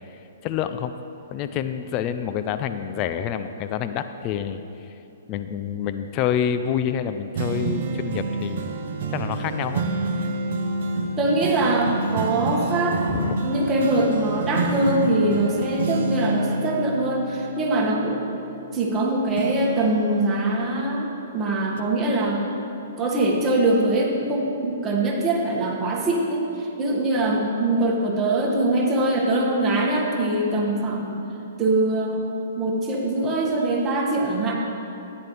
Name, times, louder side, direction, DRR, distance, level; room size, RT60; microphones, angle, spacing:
voice 1, 0.1-0.9 1.3-4.6 5.3-8.7 9.1-9.9 13.1-13.4, left 9 dB, 35° left, 9 dB, 0.4 m, -27 dB
sound 1, 7.3-19.0 19.4-21.3 21.8-21.9, right 2 dB, 60° right, 0.9 m, -28 dB
voice 2, 11.2-13.0 13.4-18.3 18.7-21.1 21.3-22.4 23.0-31.2 31.6-32.2 32.6-34.5, right 2 dB, 20° right, -3 dB, 1.9 m, -23 dB
14.0 x 9.5 x 3.4 m, 2.9 s
hypercardioid pair, 120°, 0 cm